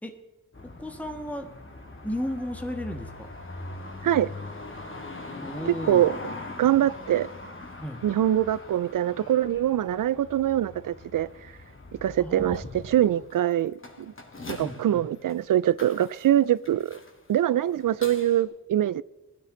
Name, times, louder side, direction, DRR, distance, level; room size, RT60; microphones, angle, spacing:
sound 1, 0.5-18.4, left 2 dB, 35° left, 2.5 m, -42 dB
voice 1, 0.6-1.6 2.0-3.3 5.4-6.0 7.8-8.0 12.2-12.6 14.6-15.1, equal, 5° left, 1.4 m, -34 dB
voice 2, 5.7-6.2 6.6-7.3 8.0-11.3 12.0-14.1 14.5-17.0 17.3-19.0, right 11 dB, 70° right, 0.5 m, -24 dB
17.0 x 12.5 x 3.9 m
cardioid pair, 60°, 33 cm